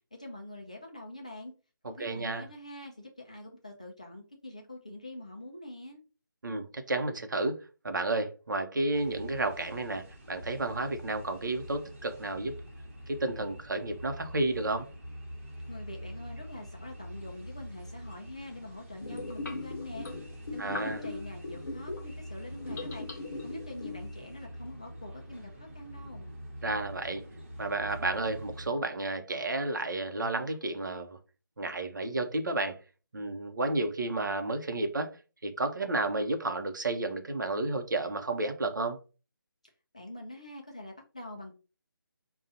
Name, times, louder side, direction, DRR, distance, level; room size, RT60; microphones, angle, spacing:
voice 1, 0.1-1.5 1.9-6.0 15.7-20.1 20.5-23.1 23.4-26.3 39.9-41.5, left 1 dB, 20° left, 0.4 m, -44 dB
voice 2, 2.0-2.5 6.4-12.5 13.1-14.9 20.6-21.0 26.6-27.2 27.6-31.2 31.6-32.8 33.1-35.2 35.4-39.0, right 2 dB, 60° right, 0.8 m, -32 dB
sound 1, 8.9-28.7, equal, 35° right, 1.0 m, -45 dB
sound 2, 19.0-22.1 22.6-24.1, left 3 dB, 50° left, 1.0 m, -39 dB
5.2 x 2.3 x 2.7 m
figure-of-eight pair, 175°, 12 cm